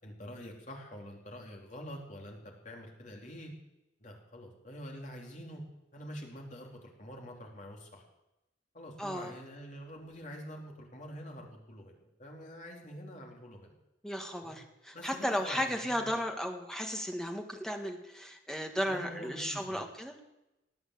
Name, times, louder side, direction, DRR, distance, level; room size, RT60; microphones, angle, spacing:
voice 1, 0.0-2.4 2.6-3.5 4.0-5.6 5.9-8.0 8.7-13.7 14.4-14.6 14.9-16.2 18.9-19.8, equal, 40° left, 0 dB, 3.2 m, -46 dB
voice 2, 9.0-9.3 14.0-20.1, equal, 5° left, 3 dB, 1.6 m, -35 dB
18.5 x 9.4 x 8.0 m, 0.94 s
head